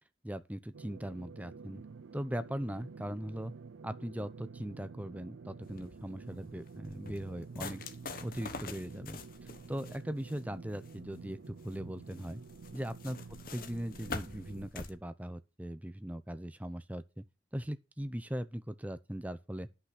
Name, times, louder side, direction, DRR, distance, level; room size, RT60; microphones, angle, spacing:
voice 1, 0.2-1.8 2.1-3.5 3.8-7.9 8.2-9.2 9.7-12.4 12.7-13.2 13.5-17.2 17.5-19.7, equal, 10° right, 0.7 m, -39 dB
sound 1, 0.7-14.7, right 4 dB, 85° right, 0.5 m, -50 dB
sound 2, 5.7-14.9, left 4 dB, 50° left, 1.1 m, -46 dB
11.0 x 5.9 x 6.0 m
head